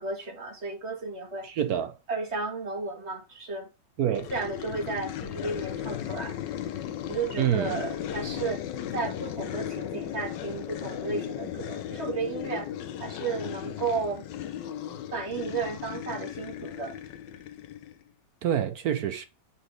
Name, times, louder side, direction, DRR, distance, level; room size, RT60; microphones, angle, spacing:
voice 1, 0.0-1.5 2.1-3.7 4.1-6.4 7.1-8.6 8.9-12.7 13.0-14.3 15.1-17.0, right 4 dB, 35° right, 2.1 m, -33 dB
voice 2, 1.4-2.0 4.0-4.3 7.4-7.8 18.4-19.3, right 10 dB, 65° right, 1.0 m, -27 dB
sound 1, 4.2-18.0, left 10 dB, 70° left, 1.3 m, -36 dB
7.0 x 5.9 x 4.7 m
omnidirectional pair, 2.1 m